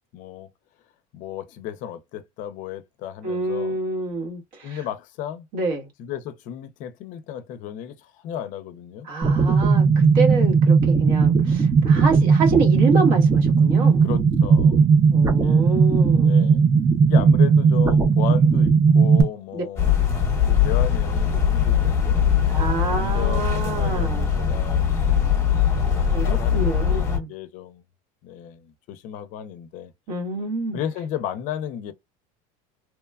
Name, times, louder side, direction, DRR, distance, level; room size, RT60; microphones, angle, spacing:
voice 1, 0.1-0.5 1.1-3.8 4.6-5.5 6.0-9.1 11.8-12.3 14.0-14.9 15.4-15.7 16.2-16.7 17.1-19.9 20.5-24.9 25.7-26.6 26.9-27.8 28.2-29.9 30.7-31.9, left 10 dB, 50° left, 0.5 m, -34 dB
voice 2, 3.2-4.8 5.5-5.9 9.0-14.0 15.1-16.3 19.5-19.6 22.5-24.3 26.1-27.3 30.1-30.8, right 3 dB, 60° right, 1.3 m, -27 dB
sound 1, 9.2-19.2, right 5 dB, 15° right, 0.4 m, -17 dB
sound 2, 19.8-27.2, left 7 dB, 15° left, 0.9 m, -21 dB
3.0 x 2.2 x 2.2 m
cardioid pair, 160°, 17 cm